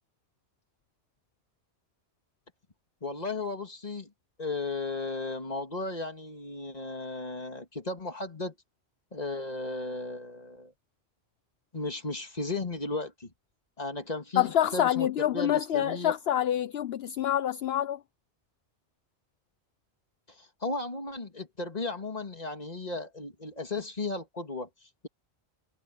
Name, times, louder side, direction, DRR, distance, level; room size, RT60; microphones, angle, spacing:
voice 1, 3.0-4.1 4.4-8.5 9.1-10.7 11.7-13.3 13.8-16.1 20.3-25.1, left 3 dB, 35° left, 2.3 m, -35 dB
voice 2, 14.4-18.0, left 11 dB, 70° left, 0.9 m, -27 dB
omnidirectional pair, 1.1 m